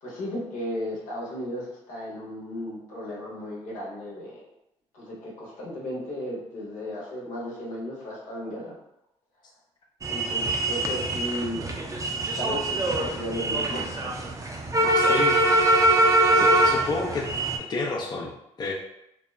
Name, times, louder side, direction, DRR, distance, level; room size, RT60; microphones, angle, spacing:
voice 1, 0.0-4.4 4.9-8.8 10.1-14.2 14.8-15.2, left 1 dB, 75° left, -4 dB, 0.9 m, -35 dB
sound 1, 10.0-17.6, right 1 dB, 25° right, 0.5 m, -23 dB
voice 2, 15.0-15.4 16.3-17.3 17.7-18.3 18.6-18.7, left 3 dB, 30° left, -2 dB, 0.5 m, -29 dB
2.8 x 2.1 x 2.3 m, 0.82 s
supercardioid pair, 65°, 13 cm